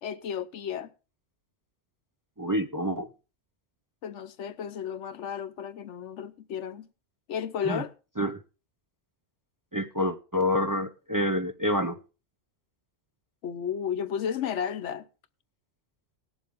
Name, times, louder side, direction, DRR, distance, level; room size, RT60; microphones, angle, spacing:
voice 1, 0.0-0.9 4.0-6.9 7.3-7.9 13.4-15.0, left 8 dB, 90° left, 1.1 m, -33 dB
voice 2, 2.4-3.1 7.7-7.8 8.2-8.4 9.7-12.0, equal, 25° right, 0.5 m, -27 dB
18.5 x 7.2 x 3.6 m
omnidirectional pair, 1.2 m